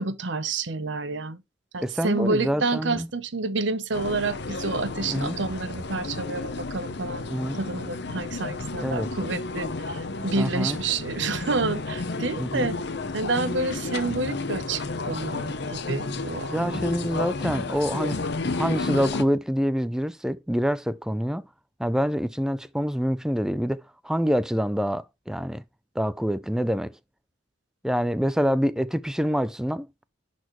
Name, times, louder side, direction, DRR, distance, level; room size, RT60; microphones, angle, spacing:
voice 1, 0.0-1.4 1.7-7.3 7.6-12.8 13.1-16.8, right 3 dB, 60° right, 0.8 m, -29 dB
voice 2, 1.8-3.1 5.1-5.4 7.3-7.6 8.8-9.1 10.4-10.8 12.4-12.7 16.5-18.2 18.5-21.5 21.8-25.6 26.0-27.0 27.8-29.9, equal, 5° right, 0.3 m, -26 dB
sound 1, 3.9-19.2, left 3 dB, 55° left, 0.8 m, -32 dB
10.5 x 4.2 x 3.1 m
head